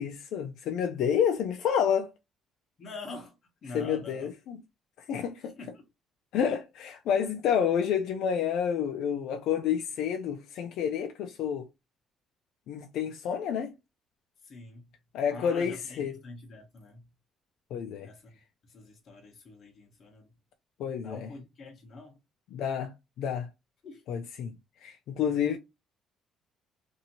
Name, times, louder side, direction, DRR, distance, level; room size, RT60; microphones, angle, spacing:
voice 1, 0.0-2.1 3.7-4.6 5.1-5.5 6.3-11.6 12.7-13.7 15.1-16.2 17.7-18.1 20.8-21.3 22.5-23.5 24.1-24.5 24.8-25.6, left 8 dB, 70° left, 0.4 m, -29 dB
voice 2, 2.8-3.3 3.6-4.3 5.4-5.9 14.4-14.9 15.3-17.1 18.0-18.4 18.6-20.3 21.0-22.2 23.8-24.0, left 3 dB, 40° left, 0.9 m, -45 dB
2.8 x 2.6 x 2.8 m
cardioid pair, 150°, 0 cm